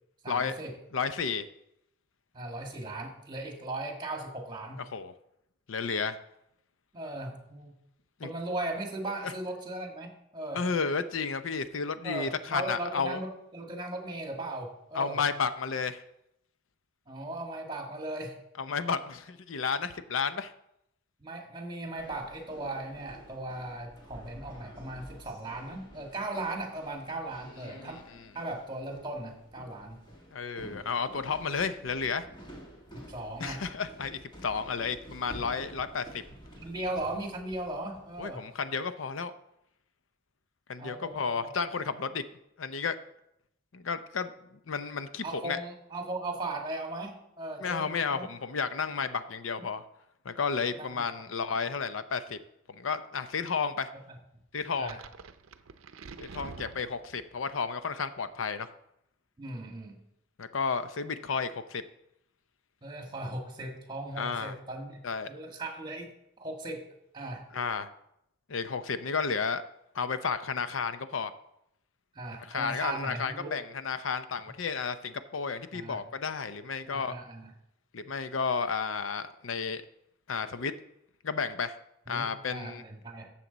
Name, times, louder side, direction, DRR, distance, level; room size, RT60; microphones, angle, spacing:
voice 1, 0.2-0.7 2.3-4.8 6.9-7.8 8.2-10.6 12.0-15.2 17.1-18.4 21.2-28.0 28.3-30.0 30.6-30.8 32.9-33.6 36.6-38.4 40.8-41.5 45.2-48.2 50.7-51.1 54.8-55.0 59.4-60.0 62.8-65.0 65.3-66.1 66.4-66.8 67.1-67.4 72.2-73.5 75.7-76.0 76.8-77.5 82.1-83.3, right 2 dB, 20° right, 2 dB, 1.9 m, -38 dB
voice 2, 0.9-1.5 4.9-5.1 5.7-6.2 8.2-8.3 10.5-13.2 14.9-16.0 18.6-20.5 27.7-28.0 30.3-32.3 33.4-36.2 38.2-39.3 40.7-42.2 42.6-43.0 43.7-45.6 47.6-49.8 50.2-52.4 52.8-53.9 54.5-55.0 56.2-58.7 60.4-61.8 64.2-64.5 65.0-65.3 67.5-67.9 68.5-69.6 69.9-71.3 72.5-77.1 77.9-79.8 80.3-80.7 81.2-81.8 82.1-82.8, left 5 dB, 75° left, 11 dB, 0.6 m, -32 dB
sound 1, 22.0-38.5, equal, 25° left, 1.7 m, -50 dB
sound 2, 54.6-57.4, right 4 dB, 85° right, 0.6 m, -47 dB
12.5 x 7.5 x 4.0 m, 0.79 s
head